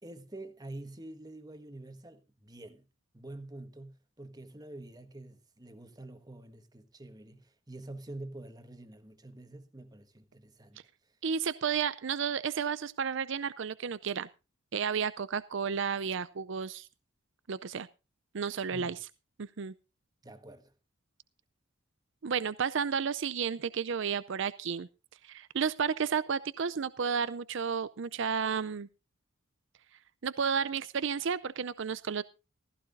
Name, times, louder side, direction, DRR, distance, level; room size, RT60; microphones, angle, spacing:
voice 1, 0.0-2.9 3.1-11.1 18.7-18.9 20.2-20.7, right 2 dB, 20° right, 1.4 m, -47 dB
voice 2, 11.2-14.3 14.7-16.9 17.5-17.9 18.3-19.0 19.4-19.7 22.2-24.9 25.2-28.9 30.2-32.2, right 6 dB, 60° right, 0.5 m, -32 dB
15.5 x 14.5 x 2.6 m
head